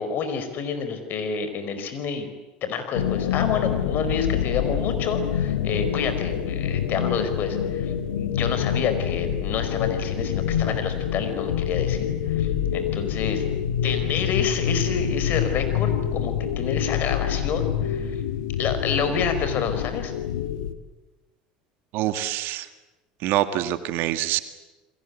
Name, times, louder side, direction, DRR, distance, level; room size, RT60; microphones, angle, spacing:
voice 1, 0.0-2.3 2.6-13.4 13.8-18.2 18.6-20.1, left 6 dB, 50° left, 9 dB, 5.0 m, -28 dB
sound 1, 2.9-20.7, left 9 dB, 80° left, 1.8 m, -26 dB
voice 2, 21.9-22.7 23.2-24.4, right 13 dB, 60° right, 10 dB, 1.9 m, -25 dB
29.0 x 22.0 x 8.4 m, 1.1 s
hypercardioid pair, 75°, 4 cm